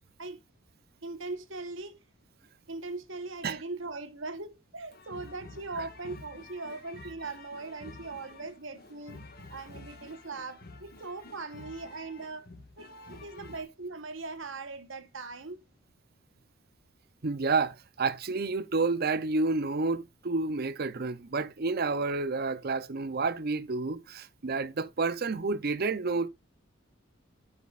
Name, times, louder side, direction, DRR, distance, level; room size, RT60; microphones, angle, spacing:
voice 1, 1.0-2.0 2.7-9.2 9.5-12.5 12.8-15.6, right 3 dB, 65° right, 1.3 m, -40 dB
sound 1, 4.9-13.6, left 2 dB, 50° left, 1.6 m, -49 dB
voice 2, 17.2-26.3, right 3 dB, 50° right, 0.7 m, -30 dB
13.5 x 5.2 x 2.5 m
head